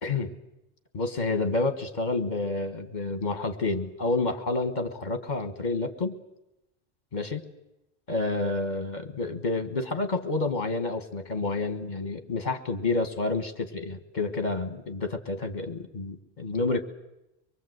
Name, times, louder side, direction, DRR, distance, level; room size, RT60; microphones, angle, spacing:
voice 1, 0.0-0.3 0.9-6.1 7.1-7.4 8.1-16.8, left 3 dB, 45° left, 8 dB, 1.6 m, -29 dB
24.5 x 22.0 x 8.0 m, 0.91 s
omnidirectional pair, 1.0 m